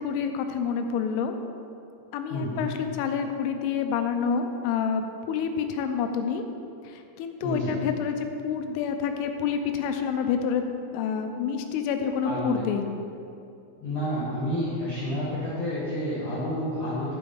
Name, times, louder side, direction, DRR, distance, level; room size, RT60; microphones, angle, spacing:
voice 1, 0.0-1.4 2.1-6.4 6.9-10.6 10.9-12.9, left 6 dB, 90° left, 6 dB, 3.3 m, -28 dB
voice 2, 2.3-2.7 7.4-7.8 12.2-12.6 13.8-17.1, equal, 65° left, -10 dB, 2.0 m, -30 dB
12.5 x 4.7 x 5.2 m, 2.6 s
omnidirectional pair, 5.7 m